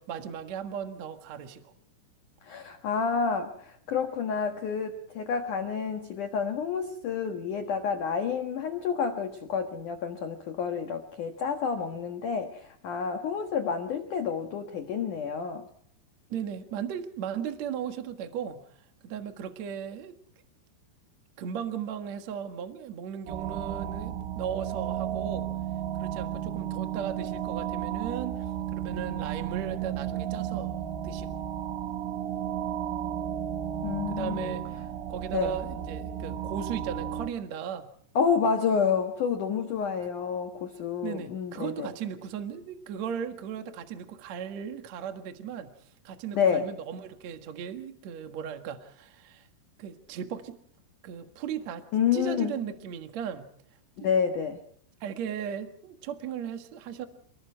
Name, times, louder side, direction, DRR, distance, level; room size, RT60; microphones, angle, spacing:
voice 1, 0.0-1.7 16.3-18.6 19.0-20.2 21.4-25.5 26.0-28.4 28.7-30.8 31.0-31.4 34.1-34.7 35.1-37.9 41.0-45.7 46.0-49.5 49.8-50.6 51.0-51.9 52.1-53.5 54.0-54.1 55.0-57.0, right 8 dB, 70° right, 6 dB, 1.6 m, -36 dB
voice 2, 2.4-15.6 33.8-34.5 35.3-35.6 38.2-41.9 46.3-46.7 51.9-52.5 54.0-54.6, left 6 dB, 65° left, 6 dB, 2.0 m, -29 dB
sound 1, 23.3-37.3, right 10 dB, 90° right, 4.3 m, -33 dB
28.5 x 21.5 x 4.6 m, 0.65 s
omnidirectional pair, 5.9 m